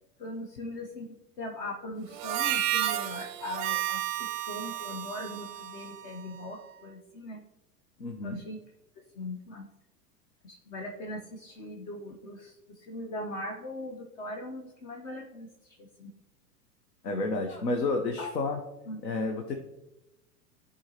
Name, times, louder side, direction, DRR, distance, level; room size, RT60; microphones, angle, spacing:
voice 1, 0.2-1.1 1.4-7.4 8.2-8.6 9.2-9.6 10.4-16.1 17.5-17.6 18.2-18.3 18.9-19.0, left 1 dB, 55° left, 2 dB, 1.0 m, -40 dB
Harmonica, 2.1-6.7, right 13 dB, 30° right, 0.5 m, -32 dB
voice 2, 8.0-8.4 17.0-18.6 19.0-19.6, left 3 dB, 80° left, 4 dB, 0.9 m, -30 dB
11.5 x 4.0 x 2.9 m, 0.92 s
figure-of-eight pair, 95°, 49 cm